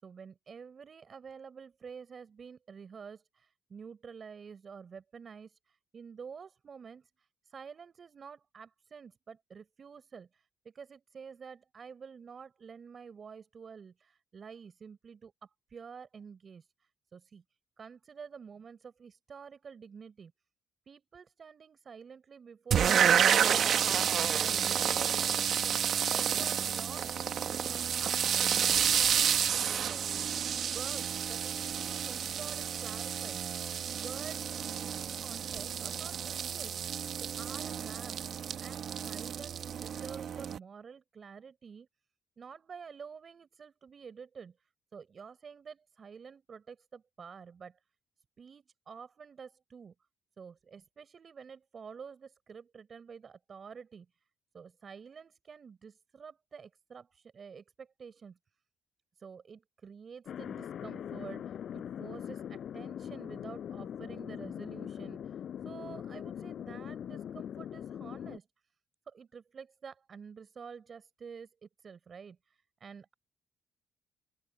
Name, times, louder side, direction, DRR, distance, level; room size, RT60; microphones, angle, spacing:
voice 1, 0.0-17.4 17.8-20.3 20.9-30.2 30.6-33.4 33.9-41.9 42.4-47.8 48.4-49.9 50.4-54.1 54.5-58.4 59.2-65.4 65.6-68.5 69.1-73.1, right 6 dB, 45° right, 5.6 m, -49 dB
sound 1, 22.7-40.6, right 8 dB, 60° right, 1.2 m, -30 dB
Thunder, 60.3-68.4, left 9 dB, 65° left, 4.9 m, -41 dB
open air
cardioid pair, 90°, 0 cm